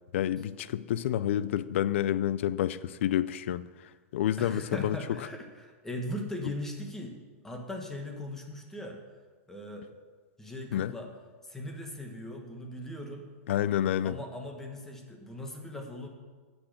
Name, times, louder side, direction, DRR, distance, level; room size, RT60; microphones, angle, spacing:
voice 1, 0.1-3.7 4.1-5.0 10.7-10.9 13.5-14.2, left 11 dB, 55° left, 16 dB, 0.5 m, -28 dB
voice 2, 4.4-7.2 7.4-9.0 9.5-9.9 10.4-11.1 11.4-13.3 14.0-16.1, left 1 dB, 5° left, 2 dB, 1.1 m, -39 dB
9.6 x 6.2 x 7.9 m, 1.5 s
supercardioid pair, 160°, 8 cm